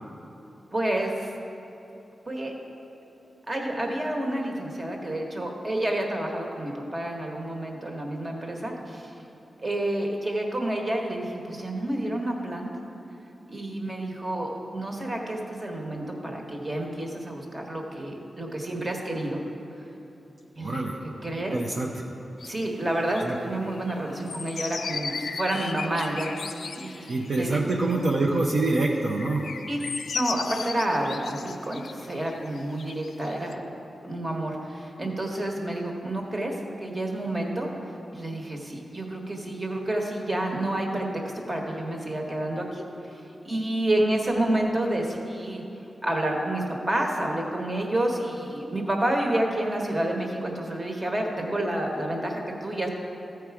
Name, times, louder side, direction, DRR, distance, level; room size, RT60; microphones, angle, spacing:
voice 1, 0.7-1.3 2.3-2.5 3.5-9.1 9.6-12.7 13.5-19.4 20.5-20.9 21.2-21.6 22.4-27.6 29.7-29.8 30.1-33.6 34.0-36.5 36.8-37.7 38.1-41.1 41.3-45.6 46.0-52.9, right 1 dB, 35° right, 1 dB, 1.5 m, -29 dB
voice 2, 20.6-21.0 21.5-21.9 23.2-23.4 27.1-29.4, right 2 dB, 70° right, -2 dB, 0.7 m, -25 dB
sound 1, 22.4-28.1 28.4-28.8 29.1-33.5, left 5 dB, 80° left, 0.4 m, -36 dB
14.0 x 4.7 x 4.8 m, 3.0 s
cardioid pair, 55°, 0 cm